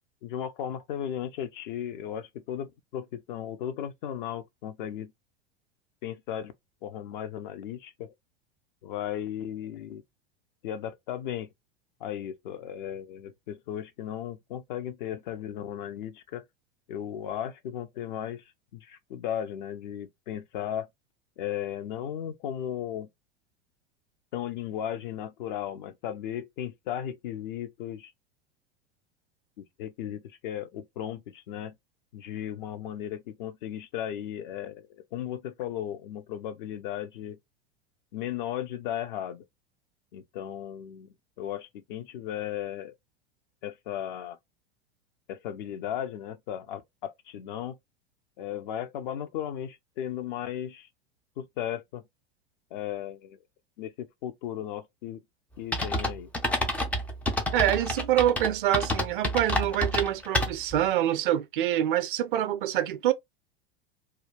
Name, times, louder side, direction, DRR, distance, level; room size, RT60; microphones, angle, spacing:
voice 1, 0.2-5.1 6.0-6.5 6.8-8.1 8.8-10.0 10.6-11.5 12.0-16.4 16.9-18.4 18.7-20.9 21.4-23.1 24.3-28.1 29.6-31.8 32.1-37.4 38.1-39.4 40.1-42.9 43.6-44.4 45.3-47.8 48.4-50.9 51.4-52.0 52.7-53.4 53.8-55.2 55.6-56.3, left 10 dB, 50° left, 0.6 m, -36 dB
sound 1, 55.7-60.8, left 1 dB, 5° left, 0.3 m, -28 dB
voice 2, 57.5-63.1, right 12 dB, 55° right, 0.5 m, -26 dB
2.4 x 2.2 x 3.2 m
figure-of-eight pair, 85°, 31 cm